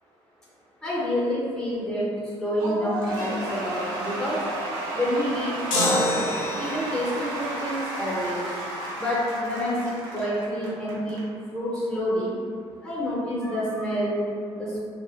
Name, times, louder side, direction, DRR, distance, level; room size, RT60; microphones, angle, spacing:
voice 1, 0.8-4.4 4.9-6.1 6.6-8.4 9.0-11.2 11.5-12.4 12.8-14.8, equal, 5° left, -7 dB, 0.9 m, -28 dB
Cheering / Applause / Crowd, 2.6-11.2, right 1 dB, 80° right, 0.6 m, -32 dB
sound 1, 5.7-7.0, left 1 dB, 75° left, 0.6 m, -26 dB
2.8 x 2.1 x 2.4 m, 2.3 s
hypercardioid pair, 55°, 15 cm